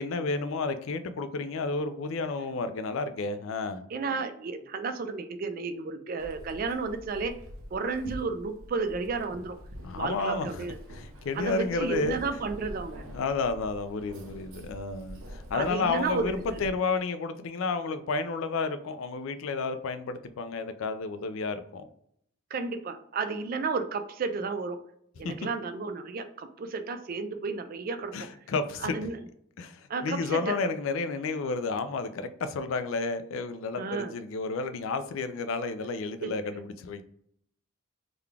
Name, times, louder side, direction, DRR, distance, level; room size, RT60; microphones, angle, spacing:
voice 1, 0.0-3.8 9.8-10.6 10.9-12.2 13.1-21.9 25.2-25.3 28.1-28.9 29.6-37.0, left 4 dB, 70° left, 10 dB, 0.4 m, -31 dB
voice 2, 3.9-7.4 7.7-9.6 9.9-10.8 11.3-13.0 15.5-16.4 22.5-24.8 25.2-28.3 28.8-29.2 29.9-30.7 33.8-34.1 36.2-36.3, right 4 dB, 40° right, 9 dB, 0.3 m, -32 dB
Keys jangling, 6.2-16.7, equal, 80° right, 0.7 m, -45 dB
3.8 x 2.2 x 3.3 m, 0.69 s
head